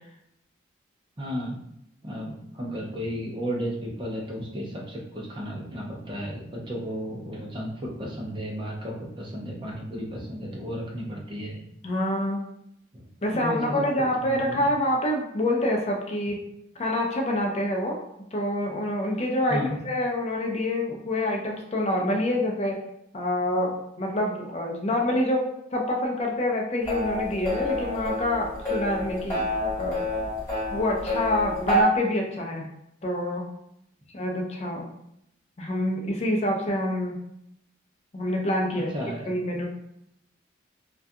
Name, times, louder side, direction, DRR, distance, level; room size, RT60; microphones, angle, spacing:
voice 1, 1.2-1.6 2.0-11.6 12.9-13.9 14.2-14.7 19.5-19.7 38.7-39.2, equal, 25° right, -2 dB, 0.5 m, -33 dB
voice 2, 11.8-12.4 13.2-16.4 16.8-18.0 18.3-22.8 23.1-29.4 29.8-30.0 30.7-32.7 33.0-33.5 34.1-34.9 35.6-37.2 38.1-38.9 39.3-39.7, left 1 dB, 35° left, 1 dB, 0.4 m, -26 dB
sound 1, 26.9-31.8, left 1 dB, 10° left, 1.3 m, -28 dB
2.4 x 2.2 x 2.6 m, 0.78 s
head